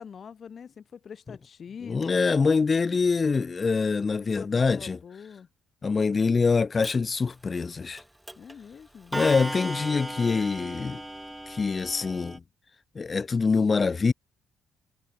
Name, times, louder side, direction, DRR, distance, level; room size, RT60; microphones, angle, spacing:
voice 1, 0.0-2.3 4.2-5.5 8.4-9.1 13.5-13.6, left 7 dB, 50° left, 4.5 m, -44 dB
voice 2, 1.8-5.0 5.8-8.0 9.1-11.0 11.5-12.4 12.9-14.1, left 4 dB, 35° left, 1.3 m, -24 dB
Clock, 6.8-6.9 8.0-8.1 8.3-8.5 9.1-12.4, right 1 dB, 5° right, 4.9 m, -36 dB
cardioid pair, 90°, 0 cm